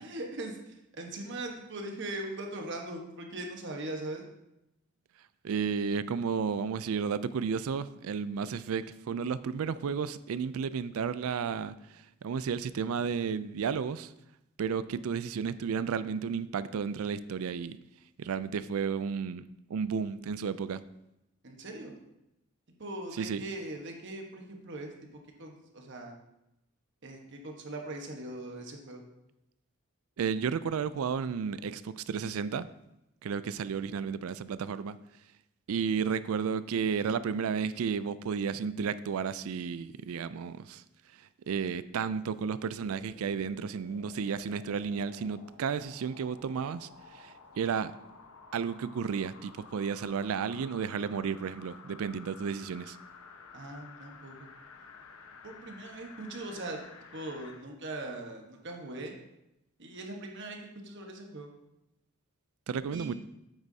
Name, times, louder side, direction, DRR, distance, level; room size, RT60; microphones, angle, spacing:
voice 1, 0.0-4.2 21.4-22.0 22.8-24.9 25.4-26.1 27.0-29.0 53.5-54.5 55.4-56.8 57.1-59.1 59.8-60.6 60.8-61.5 62.9-63.1, right 2 dB, 55° right, 2 dB, 1.2 m, -40 dB
voice 2, 5.4-11.7 12.2-14.1 14.6-17.8 18.2-20.8 23.2-23.4 30.2-32.7 33.2-35.0 35.7-40.8 41.5-46.9 47.1-47.9 48.5-53.0 62.7-63.1, right 6 dB, 75° right, 15 dB, 0.4 m, -32 dB
sound 1, 42.7-57.6 58.1-58.2, left 4 dB, 65° left, 0.9 m, -53 dB
9.2 x 7.9 x 2.8 m, 0.88 s
head